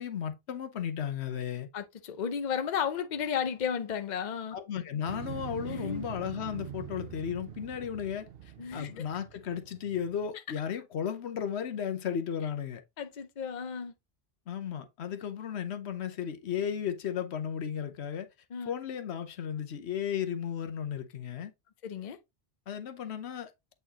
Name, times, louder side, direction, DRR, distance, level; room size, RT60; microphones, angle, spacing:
voice 1, 0.0-1.7 4.5-8.3 8.7-12.8 14.5-18.3 18.7-21.5 22.7-23.5, left 8 dB, 85° left, 1.1 m, -34 dB
voice 2, 1.7-4.6 5.7-6.0 8.6-9.1 13.0-13.9 18.5-18.7 21.8-22.2, left 7 dB, 50° left, 0.7 m, -33 dB
Motorcycle, 5.1-10.3, right 10 dB, 65° right, 0.8 m, -44 dB
8.0 x 4.3 x 2.8 m
omnidirectional pair, 1.1 m